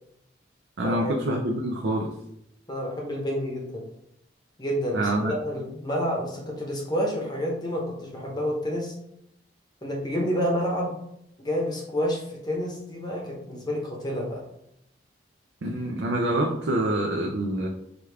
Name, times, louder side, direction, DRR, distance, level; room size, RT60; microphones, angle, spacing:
voice 1, 0.8-2.1 4.9-5.3 15.6-17.7, right 1 dB, 70° right, 0 dB, 0.5 m, -26 dB
voice 2, 2.7-3.9 4.6-8.9 9.8-10.9 11.4-14.4, equal, 20° left, -1 dB, 0.8 m, -29 dB
4.9 x 2.3 x 3.3 m, 0.76 s
head